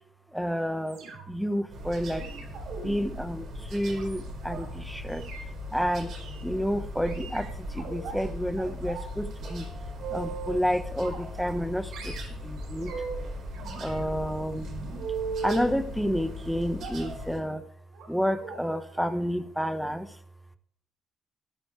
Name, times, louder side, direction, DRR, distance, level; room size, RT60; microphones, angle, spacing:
voice 1, 0.3-1.0 1.3-2.3 2.8-5.3 5.7-6.1 6.4-9.7 10.1-12.9 13.8-14.7 15.4-17.6 18.1-20.1, equal, ahead, 9 dB, 1.3 m, -30 dB
sound 1, 0.9-1.5 2.2-4.6 5.1-5.4 6.1-6.4 7.1-8.2 8.6-9.1 9.4-10.6 11.0-11.7 11.9-13.2 13.5-15.6 16.8-17.2 17.9-18.1 18.4-18.6 18.9-19.1 19.4-19.5, right 5 dB, 90° right, 4.7 m, -39 dB
sound 2, 1.7-17.4, left 1 dB, 65° right, 4.8 m, -39 dB
14.0 x 13.0 x 3.4 m, 0.69 s
cardioid pair, 90°, 0 cm